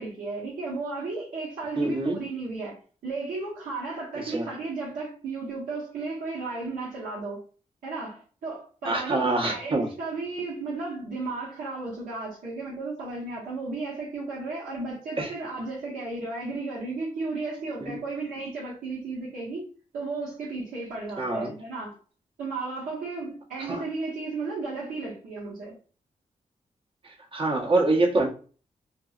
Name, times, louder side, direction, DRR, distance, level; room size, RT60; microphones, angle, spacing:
voice 1, 0.0-7.4 7.8-19.7 19.9-21.9 22.4-25.8, right 3 dB, 80° right, 1.1 m, -34 dB
voice 2, 1.8-2.2 4.1-4.5 8.8-9.9 15.2-15.3 17.8-18.0 21.2-21.5 23.6-23.8 27.0-28.3, right 2 dB, 40° right, 0.9 m, -26 dB
2.9 x 2.6 x 2.3 m
cardioid pair, 55°, 14 cm